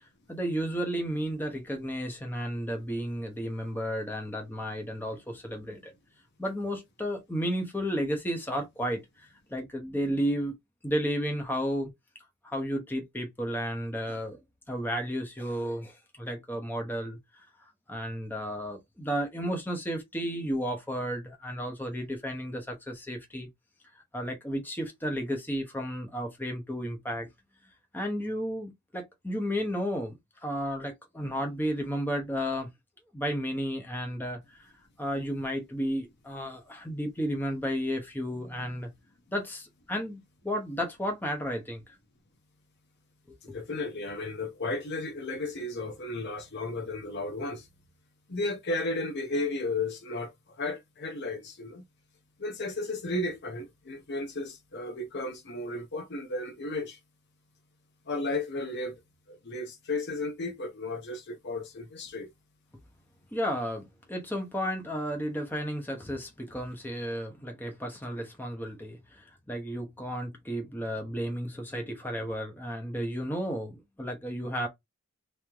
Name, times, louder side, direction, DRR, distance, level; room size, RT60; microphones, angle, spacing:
voice 1, 0.3-5.9 6.4-10.5 10.8-11.9 12.4-14.4 14.7-17.4 17.9-23.5 24.1-27.3 27.9-32.7 33.1-34.7 35.0-38.9 39.3-41.8 43.5-43.6 63.3-74.7, equal, 10° left, 1.0 m, -33 dB
voice 2, 43.4-47.7 48.3-50.3 50.6-51.8 52.4-57.0 58.1-59.0 59.3-62.3, left 2 dB, 50° left, 0.7 m, -34 dB
3.2 x 2.9 x 3.4 m
head